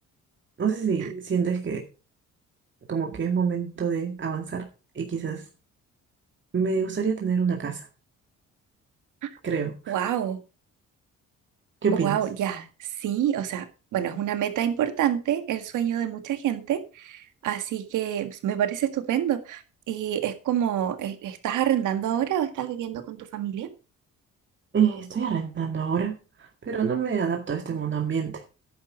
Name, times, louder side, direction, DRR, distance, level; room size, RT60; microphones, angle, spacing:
voice 1, 0.6-1.8 2.9-4.6 5.0-5.4 6.5-7.9 9.4-9.9 11.8-12.2 24.7-28.4, right 6 dB, 40° right, 1 dB, 2.0 m, -27 dB
voice 2, 9.9-10.4 11.9-23.7, right 10 dB, 80° right, 9 dB, 1.8 m, -27 dB
10.5 x 8.5 x 5.1 m, 0.33 s
cardioid pair, 90°, 30 cm